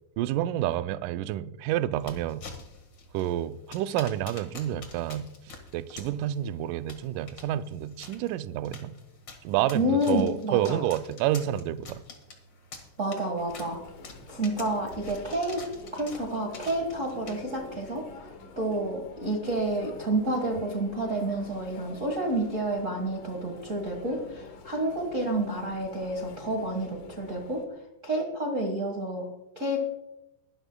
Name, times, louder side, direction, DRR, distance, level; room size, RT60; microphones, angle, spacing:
voice 1, 0.2-2.4 3.1-5.3 5.7-9.0 9.4-12.0, right 12 dB, 80° right, 1.9 m, -29 dB
sound 1, 2.0-17.7, left 3 dB, 40° left, 1.8 m, -48 dB
voice 2, 9.7-10.8 13.0-13.8 14.3-15.6 15.9-18.1 18.6-27.6 28.0-29.3 29.5-29.8, right 1 dB, 55° right, 0.8 m, -29 dB
Chatter, 13.3-27.7, left 4 dB, 65° left, 2.9 m, -47 dB
22.5 x 12.0 x 2.3 m
omnidirectional pair, 4.1 m